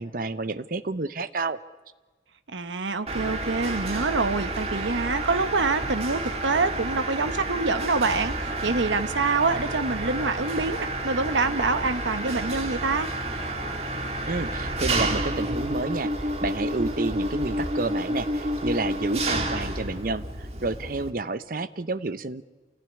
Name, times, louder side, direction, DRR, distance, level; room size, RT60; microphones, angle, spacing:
voice 1, 0.0-1.6 14.3-22.4, right 3 dB, 50° right, 13 dB, 0.8 m, -30 dB
voice 2, 2.5-13.1, right 3 dB, 85° right, 10 dB, 1.1 m, -26 dB
Mechanisms, 3.1-21.1, right 1 dB, 35° right, 1.8 m, -30 dB
27.5 x 15.5 x 9.8 m, 1.3 s
head